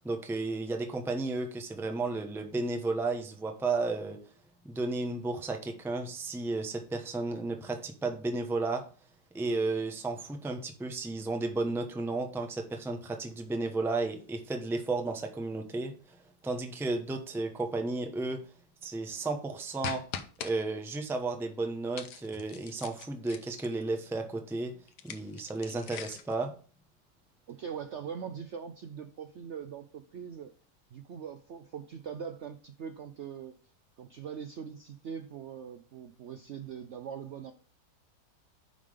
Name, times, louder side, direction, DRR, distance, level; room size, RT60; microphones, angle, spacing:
voice 1, 0.0-4.2 4.6-8.8 9.3-16.2 16.4-18.4 18.8-20.0 20.4-24.7 25.0-26.5, right 3 dB, 5° right, 4 dB, 0.4 m, -33 dB
sound 1, 19.8-20.5 21.9-23.8 24.9-26.3, left 8 dB, 70° left, 1.3 m, -41 dB
voice 2, 27.5-30.5 30.9-33.6 34.0-37.5, right 7 dB, 85° right, 8 dB, 0.6 m, -42 dB
10.0 x 3.7 x 5.0 m, 0.40 s
omnidirectional pair, 1.9 m